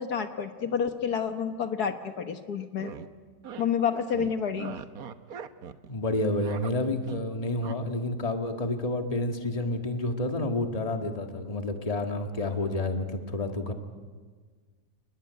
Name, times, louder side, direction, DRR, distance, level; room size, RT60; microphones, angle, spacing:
voice 1, 0.0-2.9 3.6-4.7, left 7 dB, 65° left, 7 dB, 1.7 m, -29 dB
sound 1, 2.6-3.1 3.4-3.7 3.9-5.9 6.2-7.2 7.6-7.7, right 8 dB, 60° right, 1.4 m, -41 dB
voice 2, 5.9-13.7, left 2 dB, 20° left, 5 dB, 1.8 m, -29 dB
30.0 x 20.0 x 9.4 m, 1.5 s
omnidirectional pair, 1.8 m